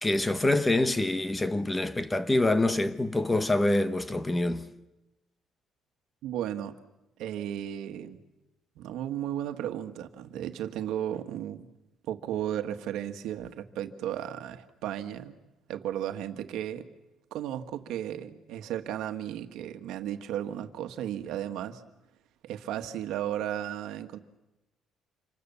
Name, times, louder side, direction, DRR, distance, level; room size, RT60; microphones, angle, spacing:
voice 1, 0.0-4.7, left 2 dB, 15° left, 1.1 m, -26 dB
voice 2, 6.2-6.7 7.2-8.2 8.8-11.7 12.1-15.4 15.7-16.9 17.3-21.8 22.4-24.2, right 11 dB, 80° right, 1.5 m, -34 dB
27.5 x 24.0 x 7.0 m
cardioid pair, 130°, 0 cm